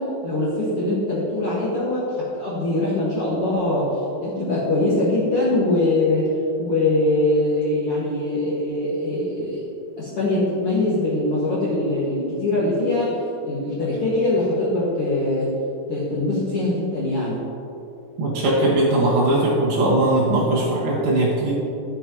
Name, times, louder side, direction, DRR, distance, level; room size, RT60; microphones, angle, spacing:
voice 1, 0.0-3.9 4.2-6.3 6.6-9.7 10.0-13.2 13.4-15.5 15.9-17.4, left 2 dB, 50° left, -8 dB, 1.8 m, -22 dB
voice 2, 18.2-21.5, right 1 dB, 65° right, -8 dB, 3.1 m, -19 dB
14.0 x 8.4 x 3.0 m, 2.7 s
omnidirectional pair, 4.8 m